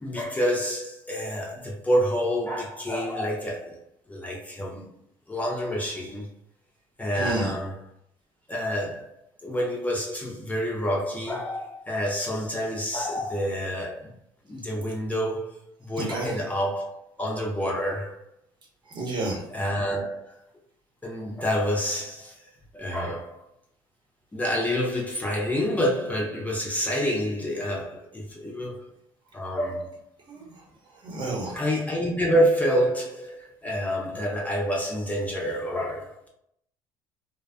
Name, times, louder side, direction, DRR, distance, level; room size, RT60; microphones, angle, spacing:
voice 1, 0.0-3.8 4.1-4.9 5.3-6.3 7.0-7.9 8.5-9.1 9.4-14.1 14.5-18.2 19.5-20.4 21.0-22.4 22.7-23.4 24.3-28.9 29.3-30.0 30.4-30.5 31.5-36.3, equal, 15° left, 0.5 m, -28 dB
voice 2, 7.2-7.5 16.0-16.4 18.9-19.4 30.3-30.4 31.0-31.6, right 2 dB, 45° right, 0.9 m, -30 dB
2.4 x 2.2 x 2.2 m
supercardioid pair, 100°, 11 cm